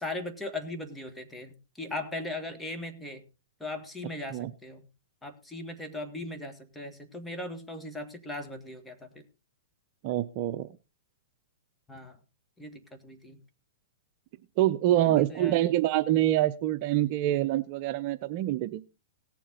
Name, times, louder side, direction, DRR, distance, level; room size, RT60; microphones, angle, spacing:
voice 1, 0.0-3.2 3.6-4.8 5.2-9.1 11.9-12.2 12.6-13.4 14.9-15.6, left 2 dB, 5° left, 6 dB, 1.9 m, -38 dB
voice 2, 10.0-10.7 14.6-18.8, right 13 dB, 45° right, 10 dB, 0.7 m, -26 dB
18.0 x 7.2 x 3.9 m, 0.30 s
hypercardioid pair, 135°, 0 cm